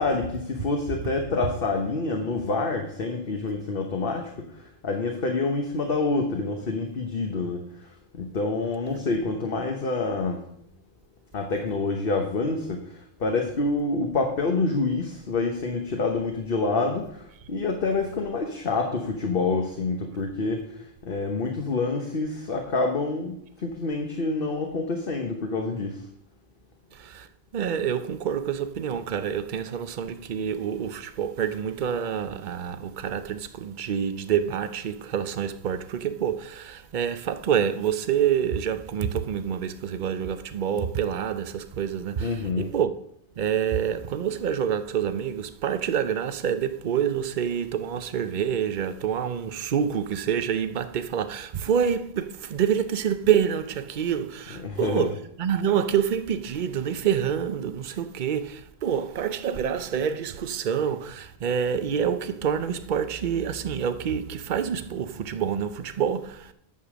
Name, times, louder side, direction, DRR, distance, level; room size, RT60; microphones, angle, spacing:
voice 1, 0.0-4.3 4.8-7.6 8.1-10.4 11.3-12.8 13.2-20.6 21.0-26.0 42.2-42.7 54.5-55.1, left 3 dB, 60° left, 1.3 m, -27 dB
voice 2, 26.9-27.3 27.5-42.9 43.4-66.5, right 8 dB, 50° right, 0.8 m, -27 dB
9.6 x 6.7 x 6.2 m
omnidirectional pair, 1.1 m